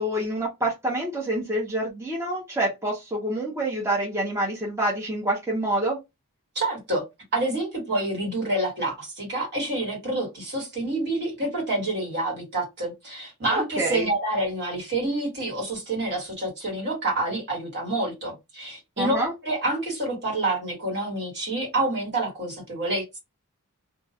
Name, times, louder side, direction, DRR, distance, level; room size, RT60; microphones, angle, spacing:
voice 1, 0.0-6.0 13.5-14.1 19.0-19.3, right 1 dB, 10° right, 0.7 m, -27 dB
voice 2, 6.5-7.0 7.3-23.2, right 2 dB, 50° right, 1.4 m, -28 dB
2.3 x 2.2 x 2.7 m
head